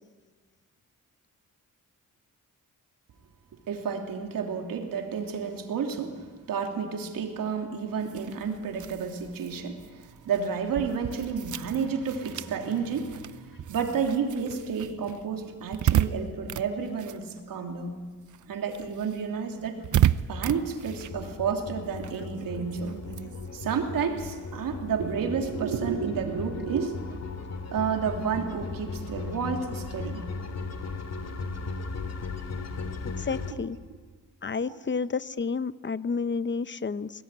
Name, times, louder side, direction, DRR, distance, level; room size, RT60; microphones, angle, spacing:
voice 1, 3.7-17.9 18.5-19.8 20.3-22.9 23.5-26.9 27.7-30.2 33.5-33.6 34.7-34.8, right 6 dB, 90° right, 3 dB, 3.2 m, -31 dB
sound 1, 8.0-17.9 18.2-25.1, right 11 dB, 65° right, 0.8 m, -33 dB
sound 2, 20.8-33.5, left 4 dB, 50° left, 2.6 m, -37 dB
voice 2, 33.2-33.8 34.4-37.1, left 5 dB, 35° left, 15 dB, 0.9 m, -30 dB
23.0 x 19.0 x 9.2 m, 1.4 s
cardioid pair, 75°, 33 cm